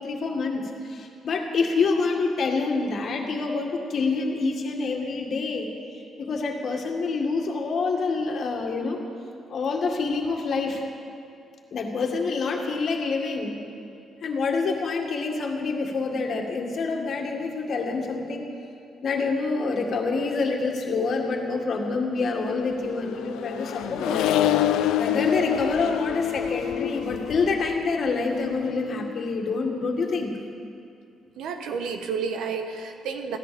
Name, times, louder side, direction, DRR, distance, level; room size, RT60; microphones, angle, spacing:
voice 1, 0.0-5.7 6.2-9.0 9.5-10.8 11.7-13.6 14.2-18.4 19.0-24.5 24.9-30.3, left 4 dB, 55° left, 2 dB, 2.0 m, -27 dB
Accelerating revving vroom, 22.6-29.3, left 11 dB, 90° left, 0.4 m, -27 dB
voice 2, 31.4-33.4, right 5 dB, 85° right, 5 dB, 1.3 m, -31 dB
15.5 x 10.5 x 7.1 m, 2.5 s
cardioid pair, 90°, 0 cm